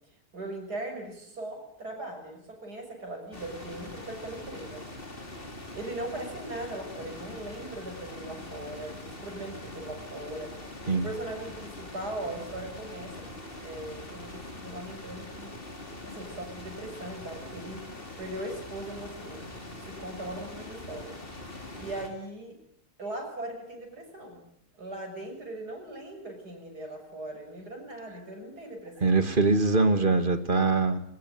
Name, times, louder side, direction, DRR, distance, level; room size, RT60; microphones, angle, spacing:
voice 1, 0.3-4.9 5.3-5.5 5.7-10.5 10.9-13.3 13.6-15.5 16.1-17.8 18.2-21.2 21.8-22.6 23.0-24.4 24.7-29.2, right 1 dB, 85° right, 3 dB, 7.4 m, -39 dB
sound 1, 3.3-22.1, left 2 dB, 35° left, 3.7 m, -43 dB
voice 2, 29.0-31.0, right 3 dB, 35° right, 10 dB, 2.0 m, -23 dB
23.0 x 21.0 x 9.6 m, 0.73 s
omnidirectional pair, 1.7 m